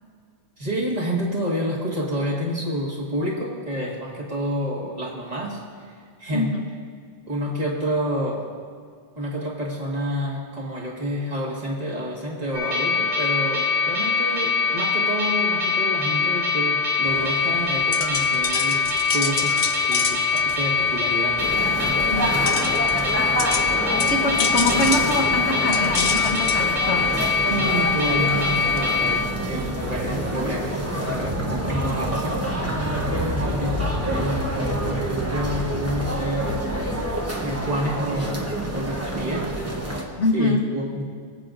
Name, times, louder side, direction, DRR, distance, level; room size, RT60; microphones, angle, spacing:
voice 1, 0.6-5.9 6.2-6.5 7.3-8.4 9.2-21.4 22.0-22.1 27.5-36.6 37.4-39.5 40.3-41.0, equal, 35° right, -4 dB, 1.9 m, -29 dB
voice 2, 6.3-6.7 22.1-22.3 24.1-27.1 40.2-40.6, left 2 dB, 90° left, 3 dB, 1.4 m, -24 dB
sound 1, 12.5-29.2, left 5 dB, 90° right, 2.9 m, -23 dB
sound 2, 17.0-28.8, left 5 dB, 40° left, 0.5 m, -31 dB
sound 3, 21.4-40.0, right 1 dB, 15° right, 1.0 m, -27 dB
22.0 x 8.0 x 2.6 m, 2.2 s
omnidirectional pair, 1.2 m